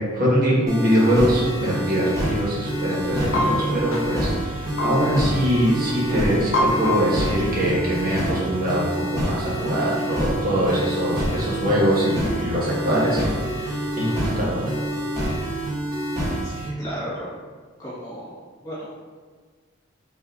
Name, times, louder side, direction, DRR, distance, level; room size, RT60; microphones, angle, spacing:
voice 1, 0.0-14.7, equal, 50° right, -6 dB, 1.3 m, -23 dB
sound 1, 0.7-16.7, right 1 dB, 20° right, 0.8 m, -27 dB
sound 2, 3.0-8.1, left 1 dB, 80° left, 0.7 m, -28 dB
voice 2, 16.4-17.3 17.8-19.0, equal, 20° left, -9 dB, 1.4 m, -35 dB
5.8 x 2.6 x 2.5 m, 1.5 s
head